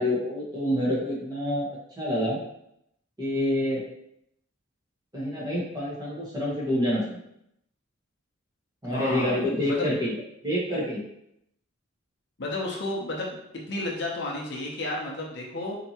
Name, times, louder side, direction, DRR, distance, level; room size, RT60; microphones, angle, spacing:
voice 1, 0.0-1.7 2.0-2.4 3.2-3.8 5.1-7.2 8.8-10.1 10.4-11.0, left 1 dB, 20° right, -6 dB, 1.1 m, -27 dB
voice 2, 8.8-9.4 9.7-9.9 12.4-13.4 13.7-15.8, left 2 dB, 50° left, -2 dB, 0.7 m, -32 dB
4.4 x 2.8 x 2.8 m, 0.76 s
head